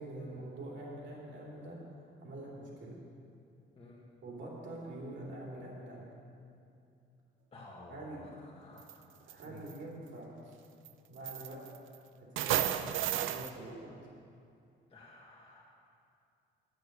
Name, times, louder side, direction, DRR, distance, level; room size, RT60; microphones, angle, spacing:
voice 1, 0.0-1.8 2.2-3.0 4.2-6.0 7.9-8.2 9.2-10.5 11.1-11.6 12.2-13.9, right 1 dB, 65° right, -4 dB, 2.9 m, -45 dB
voice 2, 7.5-8.3 8.6-8.9 9.4-9.6 14.9-15.6, left 2 dB, 30° left, -5 dB, 1.7 m, -53 dB
sound 1, 8.8-8.9 9.3-9.7 10.8-10.9 11.3-12.0 12.4-13.5, right 11 dB, 85° right, 0.5 m, -32 dB
11.0 x 6.5 x 6.6 m, 2.5 s
cardioid pair, 90°, 20 cm